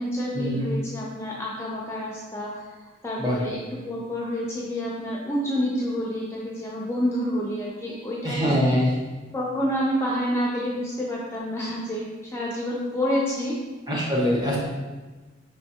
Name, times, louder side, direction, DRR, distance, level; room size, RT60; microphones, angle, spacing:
voice 1, 0.0-2.5 3.0-8.8 9.3-12.1 12.3-13.5, equal, 15° left, -4 dB, 0.4 m, -28 dB
voice 2, 8.2-8.9 13.9-14.6, equal, 20° right, -4 dB, 0.8 m, -23 dB
5.4 x 3.4 x 2.8 m, 1.3 s
head